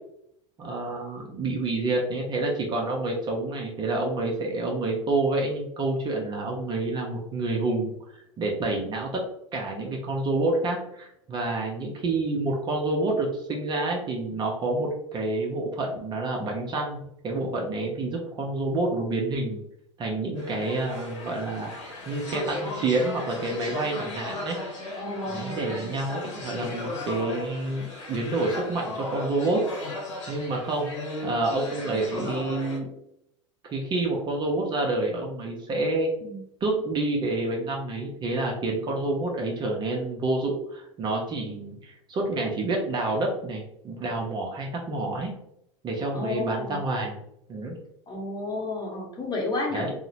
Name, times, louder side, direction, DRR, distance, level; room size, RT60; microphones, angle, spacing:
voice 1, 0.6-9.2 9.5-17.0 17.2-19.6 20.0-21.7 22.1-24.6 25.2-29.7 30.3-30.9 31.2-32.9 33.7-36.1 36.6-45.3 45.8-47.2 47.5-47.8 49.7-49.9, right 2 dB, 30° right, 0 dB, 0.5 m, -28 dB
sound 1, 20.4-32.8, left 2 dB, 75° left, 0.9 m, -36 dB
voice 2, 25.0-25.9 36.2-36.4 46.1-46.8 48.1-49.9, left 2 dB, 25° left, -1 dB, 0.9 m, -32 dB
2.7 x 2.0 x 2.7 m, 0.76 s
figure-of-eight pair, 85°, 16 cm